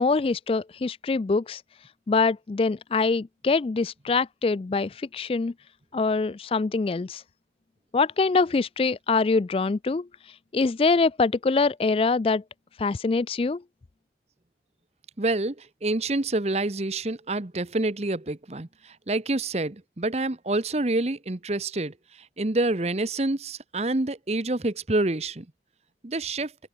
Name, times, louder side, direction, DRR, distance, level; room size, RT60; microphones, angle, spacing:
voice 1, 0.0-1.6 2.1-5.5 5.9-7.2 7.9-10.1 10.5-12.4 12.8-13.6, left 4 dB, 30° left, 0.3 m, -24 dB
voice 2, 15.2-21.9 22.4-25.5 26.0-26.5, right 2 dB, 35° right, 1.0 m, -27 dB
open air
head